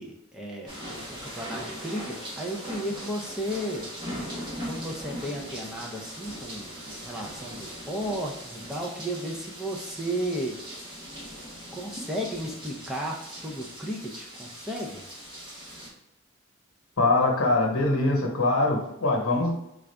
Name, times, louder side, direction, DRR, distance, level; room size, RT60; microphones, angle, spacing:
voice 1, 0.0-3.8 4.6-10.5 11.7-15.0, equal, 5° right, -2 dB, 0.5 m, -34 dB
sound 1, 0.7-15.9, equal, 20° right, 1.0 m, -40 dB
voice 2, 17.0-19.5, left 2 dB, 90° left, 0 dB, 1.0 m, -23 dB
3.8 x 2.4 x 3.3 m, 0.88 s
head